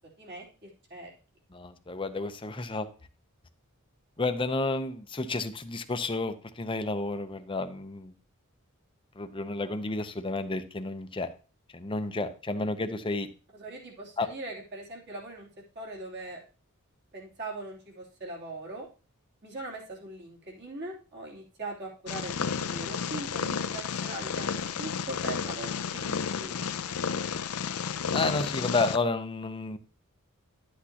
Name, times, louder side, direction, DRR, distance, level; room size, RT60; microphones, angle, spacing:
voice 1, 0.2-1.1 13.5-15.5 15.7-16.4 17.1-18.9 19.4-22.3 22.6-26.7, right 2 dB, 50° right, -4 dB, 3.0 m, -41 dB
voice 2, 1.5-2.9 4.2-8.1 9.2-11.3 11.7-13.3 14.2-14.3 28.1-29.8, left 3 dB, 25° left, 9 dB, 0.7 m, -31 dB
Purr, 22.1-29.0, left 6 dB, 80° left, 0.6 m, -32 dB
11.0 x 8.4 x 2.9 m, 0.35 s
head